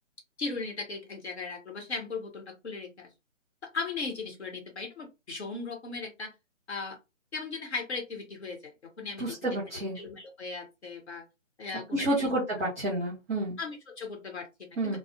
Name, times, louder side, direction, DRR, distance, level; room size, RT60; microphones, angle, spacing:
voice 1, 0.4-3.1 3.7-6.3 6.7-7.0 7.3-8.7 9.0-9.2 10.0-11.2 11.6-12.3 13.6-15.0, left 4 dB, 55° left, 3 dB, 1.1 m, -37 dB
voice 2, 9.2-10.0 11.9-13.6 14.8-15.0, right 1 dB, 10° right, -6 dB, 0.8 m, -29 dB
2.4 x 2.0 x 2.7 m, 0.25 s
figure-of-eight pair, 155°, 39 cm